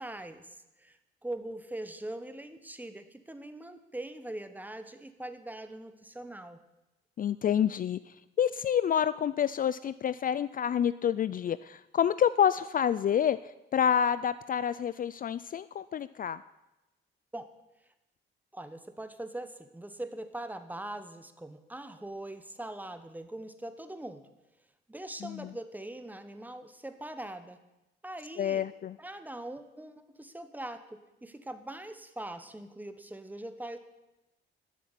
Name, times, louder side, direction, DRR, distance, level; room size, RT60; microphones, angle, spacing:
voice 1, 0.0-6.6 17.3-17.5 18.5-24.3 24.9-27.6 28.0-28.7 29.0-33.8, right 1 dB, 10° right, 10 dB, 1.2 m, -42 dB
voice 2, 7.2-16.4 25.2-25.5 28.4-29.0, left 9 dB, 45° left, 16 dB, 0.4 m, -28 dB
11.5 x 7.2 x 9.9 m, 0.98 s
cardioid pair, 90°, 20 cm